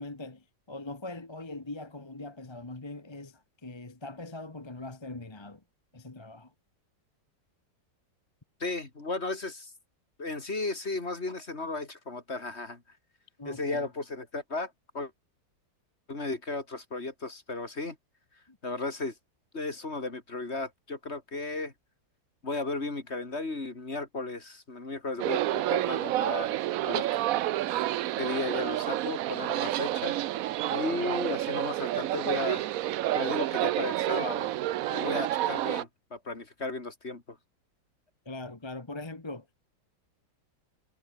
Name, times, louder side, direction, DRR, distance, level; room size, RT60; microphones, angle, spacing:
voice 1, 0.0-5.6 5.9-6.5 13.4-13.9 18.5-18.6 38.2-39.5, left 2 dB, 15° left, 1.2 m, -41 dB
voice 2, 8.6-9.7 10.2-12.8 13.4-15.1 16.1-18.0 18.6-19.1 19.5-21.7 22.4-26.6 26.8-27.2 28.2-30.2 30.7-32.7 33.1-34.5 34.9-37.4, left 3 dB, 35° left, 3.3 m, -35 dB
sound 1, 25.2-35.8, right 14 dB, 70° right, 0.8 m, -29 dB
omnidirectional pair, 2.0 m